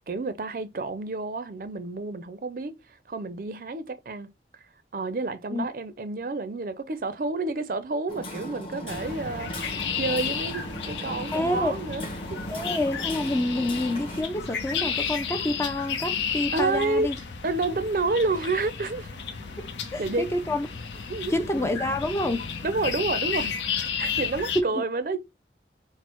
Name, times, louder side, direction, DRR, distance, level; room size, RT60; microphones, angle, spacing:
voice 1, 0.1-2.8 3.1-4.3 4.9-12.0 12.3-12.4 16.5-17.1 17.4-19.1 20.0-20.3 21.1-21.3 22.6-23.6 24.0-25.2, right 3 dB, 50° right, 0.5 m, -29 dB
Hammer, 8.1-14.2, equal, 30° left, 1.0 m, -37 dB
sound 1, 8.9-24.6, left 7 dB, 90° left, 0.7 m, -33 dB
voice 2, 11.3-11.7 12.5-17.2 19.6-20.7 21.3-22.5 24.5-24.8, left 1 dB, 15° left, 0.3 m, -28 dB
6.1 x 2.0 x 2.9 m
head